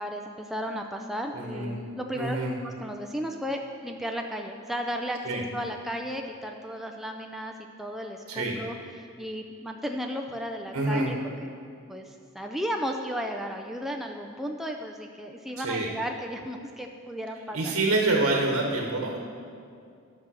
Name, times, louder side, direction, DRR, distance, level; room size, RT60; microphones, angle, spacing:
voice 1, 0.0-2.4 2.6-11.5 11.9-17.8, equal, ahead, 2 dB, 0.4 m, -34 dB
voice 2, 1.3-1.7 2.1-2.5 5.2-5.4 8.3-8.6 10.7-11.1 15.6-15.9 17.5-19.2, right 2 dB, 85° right, 0 dB, 1.2 m, -26 dB
11.0 x 6.6 x 6.2 m, 2.4 s
head